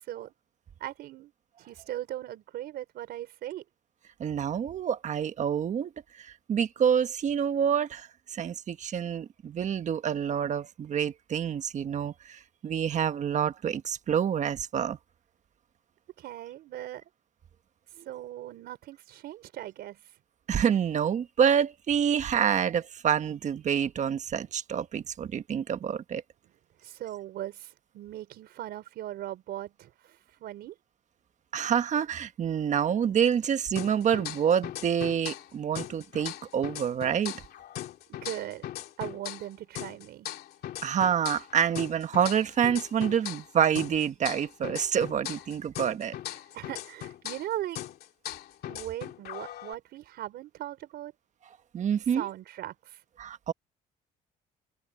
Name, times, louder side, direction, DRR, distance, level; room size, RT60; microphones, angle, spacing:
voice 1, 0.8-1.3 1.6-3.6 16.2-17.0 18.1-20.2 26.8-30.7 38.1-38.7 39.0-40.3 46.5-47.8 48.7-51.1 52.1-53.0, right 13 dB, 70° right, 4.4 m, -39 dB
voice 2, 4.2-5.9 6.2-15.0 18.0-18.1 20.5-26.2 31.5-37.3 40.8-46.1 51.7-52.3 53.2-53.5, right 8 dB, 45° right, 1.4 m, -27 dB
sound 1, 33.7-35.5 35.7-39.5 39.7-43.5 43.7-47.5 47.7-49.7, left 12 dB, 70° left, 2.7 m, -39 dB
cardioid pair, 110°, 17 cm